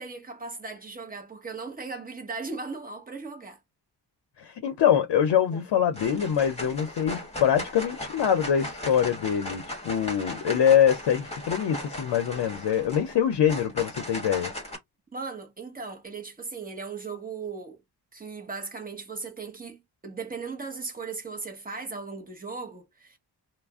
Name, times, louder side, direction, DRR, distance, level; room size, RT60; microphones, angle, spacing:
voice 1, 0.0-3.6 15.1-17.8 18.1-23.2, right 4 dB, 20° right, 0.8 m, -37 dB
voice 2, 4.4-14.5, left 9 dB, 70° left, 0.6 m, -24 dB
sound 1, 5.2-5.6 5.9-14.8, left 1 dB, 15° left, 1.1 m, -37 dB
2.4 x 2.0 x 3.4 m
wide cardioid pair, 125°, 43 cm